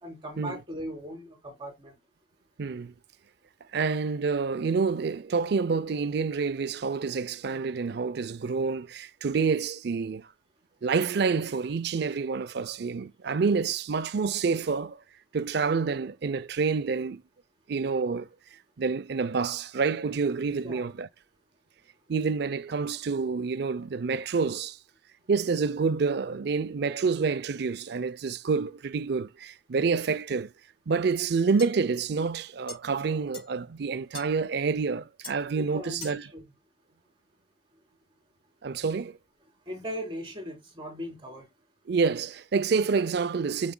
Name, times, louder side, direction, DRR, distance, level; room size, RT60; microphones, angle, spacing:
voice 1, 0.0-1.9 20.6-20.8 35.6-36.4 39.7-41.5, equal, 30° right, 3.7 m, -38 dB
voice 2, 2.6-2.9 3.7-10.3 10.8-15.0 15.3-17.2 17.7-18.3 18.8-21.1 22.1-24.8 25.3-30.5 30.9-36.2 38.6-39.2 41.9-43.7, right 5 dB, 65° right, 0.5 m, -28 dB
sound 1, 31.6-31.7 32.7-32.8 33.3-33.5 34.1-34.3 35.2-35.4 36.0-36.2, left 3 dB, 30° left, 5.9 m, -41 dB
8.8 x 7.0 x 2.2 m
head